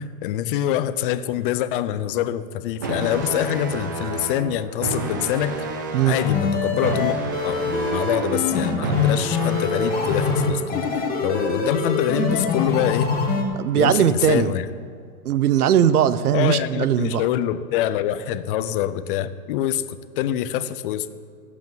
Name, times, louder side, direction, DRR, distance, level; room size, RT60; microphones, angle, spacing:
voice 1, 0.0-5.6 6.1-7.2 7.4-10.9 11.2-13.2 13.8-14.7 16.3-21.1, left 11 dB, 35° left, 13 dB, 0.7 m, -25 dB
sound 1, 2.8-10.8, right 4 dB, 15° right, 0.3 m, -30 dB
sound 2, 6.2-13.4, left 5 dB, 20° left, 2.1 m, -24 dB
voice 2, 13.5-14.5 15.2-17.3, right 10 dB, 75° right, 15 dB, 0.9 m, -19 dB
14.0 x 8.6 x 9.1 m, 2.2 s
hypercardioid pair, 135°, 45 cm